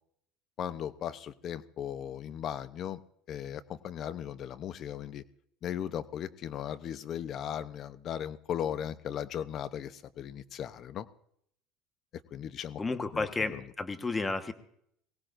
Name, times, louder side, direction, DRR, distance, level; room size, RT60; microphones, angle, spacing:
voice 1, 0.6-3.0 3.3-5.2 5.6-11.1 12.3-12.8 13.1-13.3 13.5-13.6, left 9 dB, 50° left, 14 dB, 0.8 m, -37 dB
voice 2, 12.8-14.5, left 3 dB, 20° left, 9 dB, 1.3 m, -32 dB
23.0 x 17.5 x 2.6 m, 0.70 s
supercardioid pair, 100°, 0 cm